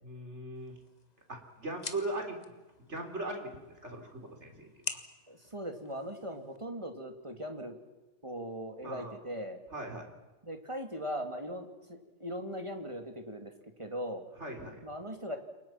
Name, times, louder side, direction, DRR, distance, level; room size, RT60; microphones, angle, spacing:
voice 1, 0.0-0.8 1.3-2.4 2.8-3.5 3.8-4.7 4.9-5.0 8.8-9.1 9.7-10.1 14.4-14.8, right 2 dB, 50° right, 4 dB, 4.3 m, -39 dB
sound 1, 0.5-6.6, left 3 dB, 30° left, 1.6 m, -47 dB
voice 2, 5.3-7.8 8.2-9.6 10.4-13.5 13.8-14.2 14.8-15.4, equal, 20° right, 5 dB, 2.8 m, -39 dB
29.0 x 24.0 x 6.0 m, 1.1 s
omnidirectional pair, 1.5 m